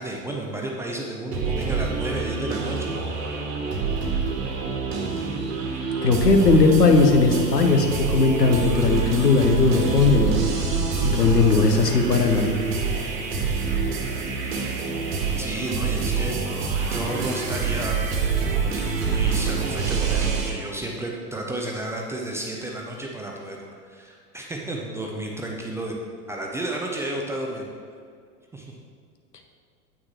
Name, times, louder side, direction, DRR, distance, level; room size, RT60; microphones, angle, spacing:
voice 1, 0.0-3.4 5.6-5.8 13.1-13.6 15.4-16.4 16.8-18.0 18.5-23.6 23.9-26.0 26.3-27.7 28.5-28.6, right 1 dB, 5° right, -1 dB, 0.4 m, -32 dB
sound 1, 1.3-20.5, right 5 dB, 55° right, 1.7 m, -26 dB
voice 2, 6.0-10.4 11.0-12.6, left 4 dB, 80° left, 4 dB, 1.1 m, -18 dB
9.3 x 8.5 x 3.1 m, 2.2 s
figure-of-eight pair, 85°, 48 cm